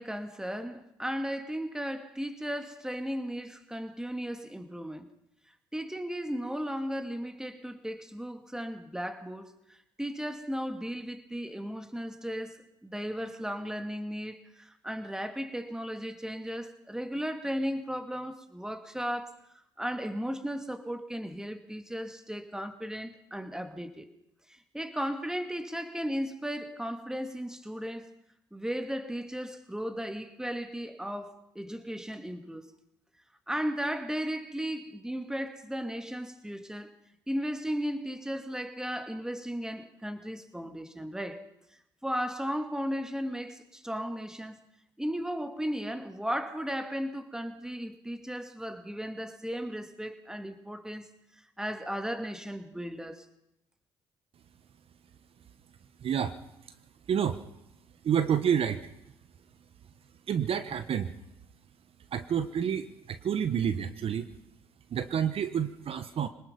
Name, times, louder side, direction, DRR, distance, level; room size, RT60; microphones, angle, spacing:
voice 1, 0.0-5.1 5.7-19.5 19.8-24.1 24.5-28.2 28.5-32.7 33.5-36.9 37.3-41.4 42.0-44.6 45.0-51.1 51.6-53.3, equal, 5° right, 2.5 m, -35 dB
voice 2, 56.0-56.4 57.1-57.4 58.0-58.8 60.3-61.1 62.1-64.3 64.9-66.3, right 8 dB, 55° right, 1.2 m, -29 dB
26.0 x 19.5 x 5.4 m
hypercardioid pair, 55°, 11 cm